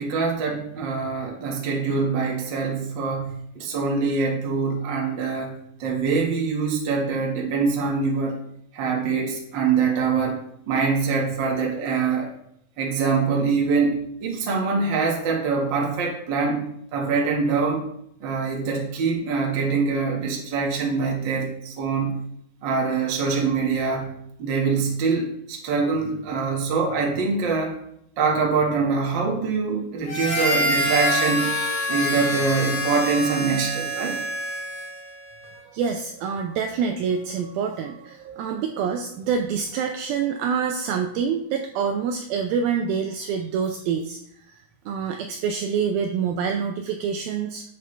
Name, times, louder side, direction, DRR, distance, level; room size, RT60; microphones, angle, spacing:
voice 1, 0.0-5.5 5.8-8.4 8.7-10.4 10.7-12.3 12.8-17.8 18.2-22.2 22.6-24.1 24.4-27.8 28.2-31.5 31.9-34.2, right 4 dB, 45° right, -1 dB, 1.5 m, -24 dB
Harmonica, 30.1-35.1, equal, 30° left, 2.7 m, -26 dB
voice 2, 35.7-44.2 44.9-47.6, right 6 dB, 80° right, 5 dB, 2.2 m, -26 dB
10.5 x 6.8 x 3.3 m, 0.72 s
omnidirectional pair, 4.7 m